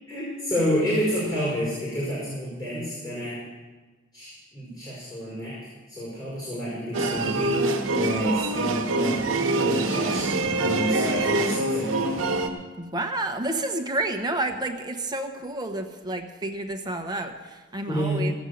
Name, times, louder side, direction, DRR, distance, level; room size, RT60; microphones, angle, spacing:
voice 1, 0.1-3.4 4.1-5.6 5.9-7.6 7.9-9.2 9.6-12.1 17.9-18.3, equal, 20° left, -10 dB, 4.5 m, -29 dB
sound 1, 6.9-12.5, right 2 dB, 85° right, 1.3 m, -25 dB
voice 2, 12.8-18.3, right 2 dB, 20° right, 5 dB, 0.9 m, -30 dB
16.0 x 8.1 x 6.5 m, 1.3 s
head